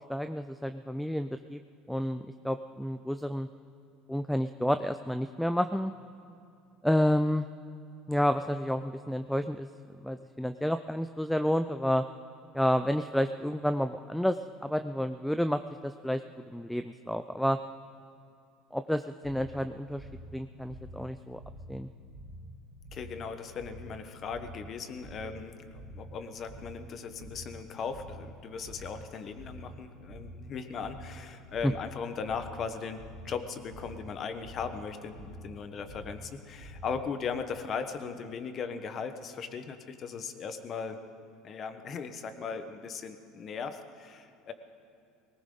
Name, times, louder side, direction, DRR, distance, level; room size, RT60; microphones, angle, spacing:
voice 1, 0.1-1.6 1.9-3.5 4.1-5.9 6.8-7.5 8.1-9.7 10.0-12.0 12.5-16.2 16.5-17.6 18.7-21.4 21.7-21.9 31.6-31.7, equal, ahead, 10 dB, 0.4 m, -30 dB
sound 1, 19.2-37.3, equal, 50° right, 2.1 m, -48 dB
voice 2, 22.9-41.0 41.4-44.5, left 6 dB, 40° left, 9 dB, 1.1 m, -38 dB
19.5 x 18.5 x 3.9 m, 2.6 s
supercardioid pair, 120°, 0 cm